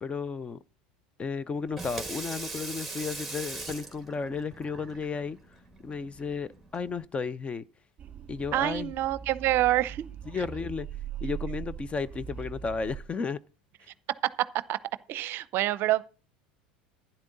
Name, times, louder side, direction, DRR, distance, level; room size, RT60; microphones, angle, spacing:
voice 1, 0.0-0.6 1.2-5.4 5.8-7.6 8.3-8.9 10.3-10.9 11.2-13.4 13.8-13.9, left 5 dB, 25° left, 0.6 m, -33 dB
Water tap faucet / Sink (filling or washing), 1.6-7.1, right 3 dB, ahead, 2.3 m, -41 dB
sound 1, 8.0-13.0, right 8 dB, 30° right, 1.5 m, -40 dB
voice 2, 8.5-10.0 10.3-10.4 14.7-14.8 15.1-16.0, right 15 dB, 50° right, 0.6 m, -26 dB
11.5 x 10.0 x 3.9 m
hypercardioid pair, 85°, 5 cm